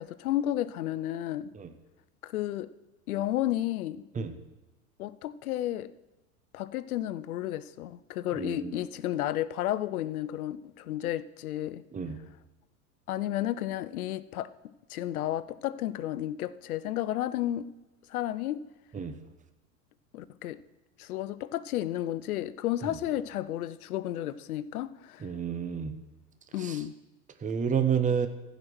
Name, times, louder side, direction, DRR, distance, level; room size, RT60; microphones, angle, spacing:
voice 1, 0.0-1.5 2.2-2.7 3.1-4.0 5.0-5.9 6.5-11.8 13.1-14.5 14.9-17.7 18.1-18.6 20.1-20.6 21.0-25.3 26.5-26.9, left 13 dB, 75° left, 17 dB, 0.7 m, -32 dB
voice 2, 8.4-8.8 11.9-12.2 18.9-19.2 25.2-25.9 26.6-26.8 27.4-28.3, right 7 dB, 15° right, 9 dB, 1.0 m, -29 dB
15.5 x 5.3 x 6.2 m, 1.1 s
hypercardioid pair, 90°, 44 cm